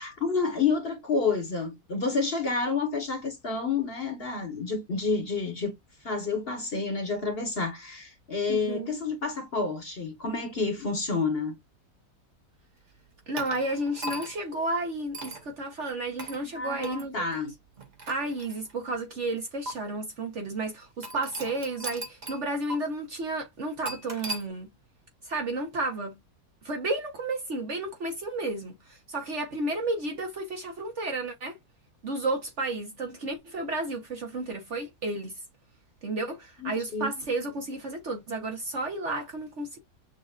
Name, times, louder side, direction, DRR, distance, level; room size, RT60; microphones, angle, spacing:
voice 1, 0.0-5.7 6.0-11.6 16.4-17.5 36.6-37.1, left 4 dB, 40° left, 1.2 m, -29 dB
voice 2, 8.5-9.0 13.3-17.2 18.1-24.7 25.2-26.2 26.6-31.6 32.0-35.4 36.0-39.8, right 2 dB, 50° right, 1.2 m, -32 dB
sound 1, 13.4-14.5 15.1-15.4 16.2-16.4 16.8-17.0 17.8-18.9 19.7-19.8 21.0-22.4 22.7-22.8 23.8-24.4, right 2 dB, 30° right, 1.0 m, -38 dB
6.4 x 2.5 x 2.4 m
omnidirectional pair, 1.7 m